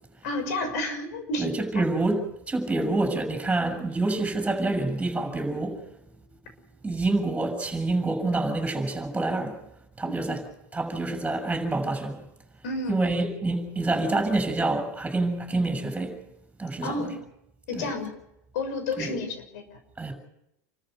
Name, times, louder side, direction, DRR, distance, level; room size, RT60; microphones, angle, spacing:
voice 1, 0.2-1.5 1.7-1.8 2.8-3.0 10.0-10.4 12.6-13.0 16.8-17.2 17.7-18.2 18.5-19.8, left 2 dB, 70° left, 6.4 m, -31 dB
voice 2, 1.4-2.2 2.5-5.8 6.8-9.6 10.0-10.4 10.7-12.2 12.9-16.2 16.6-17.1 17.8-17.9 19.0-19.2 20.0-20.2, right 2 dB, 15° right, 7.0 m, -27 dB
29.0 x 14.0 x 8.0 m
hypercardioid pair, 90°, 9 cm